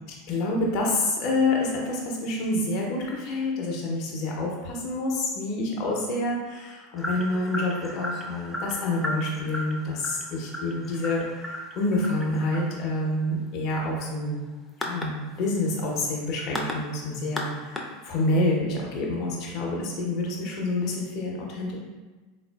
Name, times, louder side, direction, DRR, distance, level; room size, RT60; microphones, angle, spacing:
voice 1, 0.3-14.4 14.8-21.8, left 2 dB, 50° left, -2 dB, 0.6 m, -28 dB
sound 1, 7.0-18.4, equal, 5° left, 0.4 m, -36 dB
3.7 x 2.4 x 2.3 m, 1.3 s
figure-of-eight pair, 80°, 0 cm